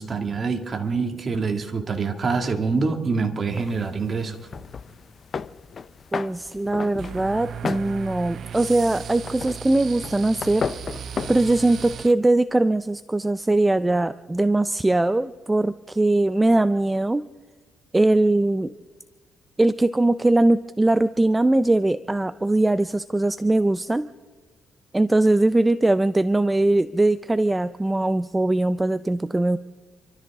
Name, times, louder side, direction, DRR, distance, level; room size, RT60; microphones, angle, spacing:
voice 1, 0.0-4.4, right 4 dB, 40° right, 4 dB, 2.2 m, -25 dB
sound 1, 3.5-11.9, left 5 dB, 45° left, 0.6 m, -35 dB
voice 2, 6.1-10.7 11.3-17.2 17.9-18.7 19.6-24.1 24.9-29.6, right 2 dB, 15° right, 13 dB, 0.5 m, -21 dB
sound 2, 7.0-12.1, right 8 dB, 60° right, 0.7 m, -36 dB
29.5 x 13.0 x 3.7 m, 1.3 s
cardioid pair, 90°, 0 cm